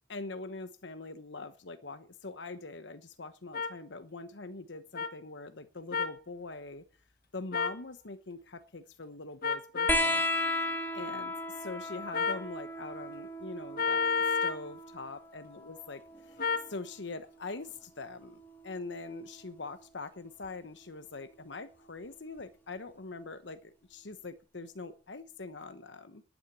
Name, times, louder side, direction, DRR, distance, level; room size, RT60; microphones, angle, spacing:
voice 1, 0.1-6.8 7.3-10.2 10.9-14.1 14.4-16.4 16.7-26.2, left 3 dB, 70° left, 10 dB, 1.1 m, -43 dB
sound 1, 3.5-3.7 5.0-5.1 5.9-6.2 7.5-7.8 9.4-10.0 12.1-12.5 13.8-14.6 16.4-16.7, left 5 dB, 55° left, 1.4 m, -30 dB
sound 2, 9.9-17.0 18.3-19.1 20.4-20.5, left 1 dB, 10° left, 1.7 m, -35 dB
11.0 x 9.3 x 8.4 m, 0.38 s
head